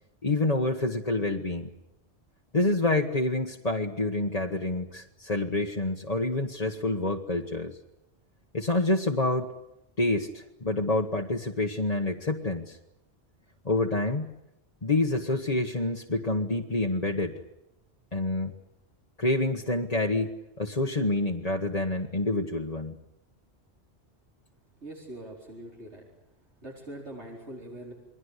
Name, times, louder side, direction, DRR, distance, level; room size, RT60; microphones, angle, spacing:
voice 1, 0.2-1.7 2.5-7.8 8.5-9.5 10.0-12.8 13.6-14.3 14.8-17.4 18.1-18.5 19.2-23.0, left 2 dB, 35° left, 1 dB, 1.5 m, -27 dB
voice 2, 24.8-26.1 26.6-27.9, right 1 dB, 85° right, -1 dB, 4.9 m, -42 dB
29.5 x 22.0 x 8.2 m, 0.89 s
omnidirectional pair, 1.1 m